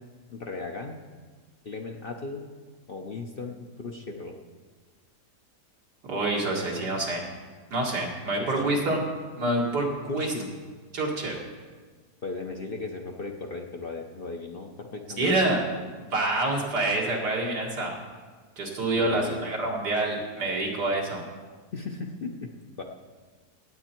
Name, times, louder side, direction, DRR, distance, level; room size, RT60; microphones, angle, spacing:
voice 1, 0.3-1.0 1.6-2.5 2.9-4.3 6.8-6.9 8.4-8.9 10.1-10.5 12.2-15.3 18.9-19.5 21.7-22.5 22.8-22.9, left 3 dB, 50° left, 2 dB, 0.7 m, -36 dB
voice 2, 6.0-7.2 7.7-9.0 9.4-10.3 10.9-11.4 15.2-15.6 16.0-18.0 18.6-21.2, right 2 dB, 90° right, -2 dB, 2.6 m, -27 dB
17.5 x 8.0 x 4.4 m, 1.5 s
omnidirectional pair, 1.7 m